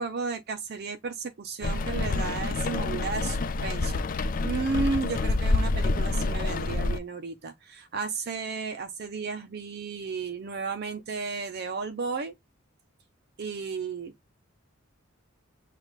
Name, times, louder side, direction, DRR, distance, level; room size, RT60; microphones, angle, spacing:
voice 1, 0.0-12.3 13.4-14.1, right 4 dB, 50° right, 0.5 m, -33 dB
Rain, 1.6-7.0, left 3 dB, 40° left, 0.4 m, -27 dB
6.5 x 2.4 x 3.0 m
head